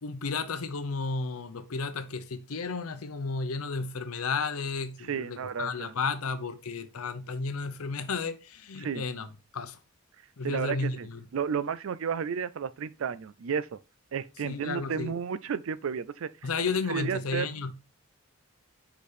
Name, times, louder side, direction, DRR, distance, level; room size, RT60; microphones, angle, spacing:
voice 1, 0.0-9.3 9.5-9.8 10.4-11.3 14.4-15.1 16.4-17.7, left 4 dB, 80° left, 0.7 m, -33 dB
voice 2, 5.1-5.9 8.8-9.0 10.4-13.8 14.1-16.3 16.9-17.5, right 6 dB, 65° right, 0.4 m, -32 dB
5.1 x 4.9 x 4.2 m
head